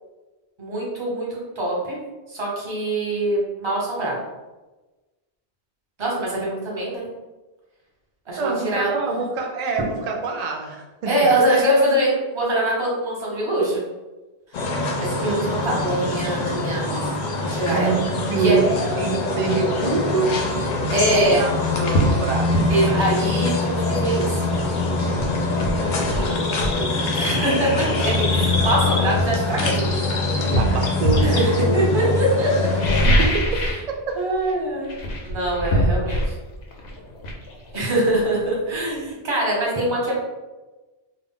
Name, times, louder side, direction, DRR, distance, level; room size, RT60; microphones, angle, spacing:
voice 1, 0.6-2.0 2.3-4.2 6.0-7.1 8.3-8.9 11.1-13.8 15.0-17.1 17.5-18.0 18.4-18.6 20.9-21.4 22.7-24.4 27.1-30.0 31.2-32.5 34.2-34.9 35.2-36.3 37.7-40.1, right 1 dB, 30° right, -4 dB, 0.8 m, -23 dB
voice 2, 8.3-11.4 17.6-20.4 21.1-21.5 21.8-22.6 25.5-27.2 30.4-32.1 33.1-33.5 34.1-34.2, right 4 dB, 55° right, 2 dB, 0.5 m, -26 dB
sound 1, 14.5-33.1, left 3 dB, 55° left, 0.6 m, -23 dB
sound 2, 21.1-21.3 21.9-22.2 22.5-22.7 24.6-24.7 25.1-26.8 27.9-28.0 28.5-29.9 30.5-31.3 32.6-33.9 34.2-34.5 34.8-38.4 38.7-38.8, equal, 90° left, 0.9 m, -23 dB
2.4 x 2.1 x 3.7 m, 1.1 s
omnidirectional pair, 1.0 m